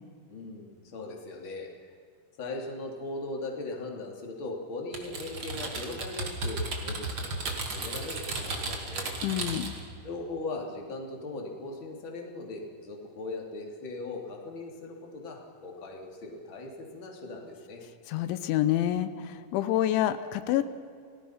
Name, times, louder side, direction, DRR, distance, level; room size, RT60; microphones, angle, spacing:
voice 1, 0.3-1.9 2.4-9.1 10.0-17.8, left 2 dB, 30° left, 0 dB, 3.1 m, -39 dB
Typing, 4.9-9.8, right 2 dB, 40° right, 2.4 m, -34 dB
voice 2, 9.2-9.7 18.1-20.7, left 12 dB, 90° left, 11 dB, 3.3 m, -27 dB
29.0 x 19.0 x 5.8 m, 2.2 s
omnidirectional pair, 5.2 m